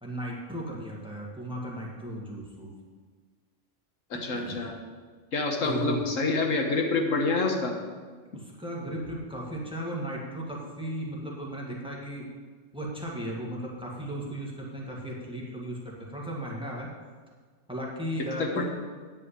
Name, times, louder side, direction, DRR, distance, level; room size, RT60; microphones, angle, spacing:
voice 1, 0.0-2.7 4.1-4.7 5.6-6.0 8.3-12.3 12.7-16.9 17.7-18.6, right 1 dB, 5° right, -3 dB, 1.9 m, -36 dB
voice 2, 4.1-4.7 5.3-7.7 18.4-18.6, left 3 dB, 90° left, 2 dB, 1.7 m, -27 dB
9.6 x 5.6 x 8.3 m, 1.5 s
omnidirectional pair, 1.3 m